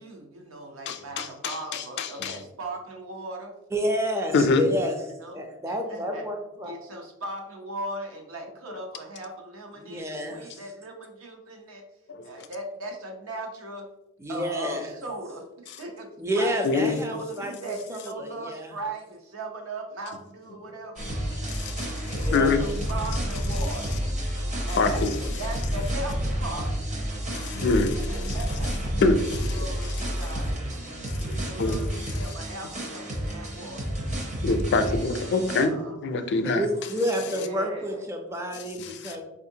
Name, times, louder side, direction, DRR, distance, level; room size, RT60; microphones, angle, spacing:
voice 1, 0.0-3.6 5.0-5.4 5.7-6.3 6.6-11.8 12.2-13.9 14.3-16.1 16.3-16.6 17.1-21.1 22.0-24.0 24.6-26.8 28.1-28.9 29.5-30.6 31.2-36.0 37.3-38.0, right 2 dB, 75° right, 0.7 m, -38 dB
voice 2, 0.9-2.4 4.3-4.6 12.1-12.2 16.6-17.0 21.5-22.6 24.7-25.1 27.3-28.4 29.0-29.6 31.6-31.8 32.1-32.3 34.4-35.7 36.0-36.7 38.8-39.2, left 3 dB, 55° left, 0.4 m, -25 dB
voice 3, 3.7-5.0 5.3-6.7 9.8-10.7 14.2-15.0 16.2-18.7 22.1-22.6 36.4-39.2, equal, 15° right, 0.4 m, -30 dB
sound 1, 21.0-35.7, equal, 35° right, 0.8 m, -30 dB
4.4 x 2.4 x 2.7 m
head